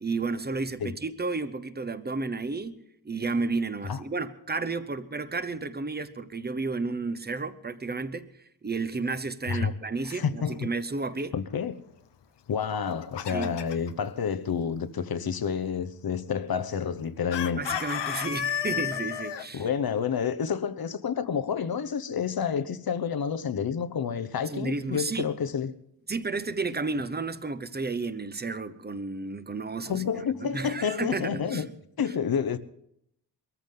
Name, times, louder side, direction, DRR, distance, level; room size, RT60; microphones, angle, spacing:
voice 1, 0.0-8.3 8.6-11.3 13.3-13.6 17.6-19.7 24.5-25.3 26.1-31.7, right 3 dB, 25° right, 0.9 m, -32 dB
voice 2, 10.1-10.7 11.3-11.7 12.5-17.7 19.5-25.7 29.9-31.7 32.0-32.6, left 7 dB, 60° left, 1.0 m, -29 dB
Chicken rooster, 12.7-13.9 17.3-19.4, left 9 dB, 90° left, 0.9 m, -31 dB
23.0 x 14.0 x 3.8 m
wide cardioid pair, 115°, 41 cm